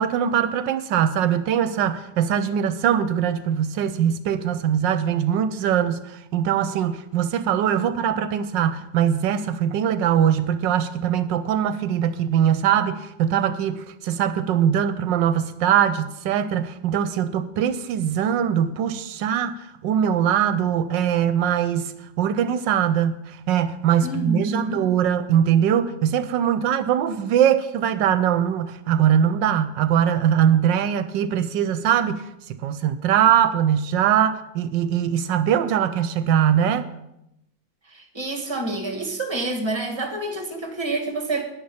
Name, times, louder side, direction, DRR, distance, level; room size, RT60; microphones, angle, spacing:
voice 1, 0.0-36.9, right 9 dB, 80° right, 12 dB, 1.3 m, -22 dB
voice 2, 24.0-24.8 37.9-41.5, right 2 dB, 15° right, 4 dB, 1.6 m, -28 dB
10.5 x 10.0 x 5.6 m, 0.85 s
omnidirectional pair, 2.0 m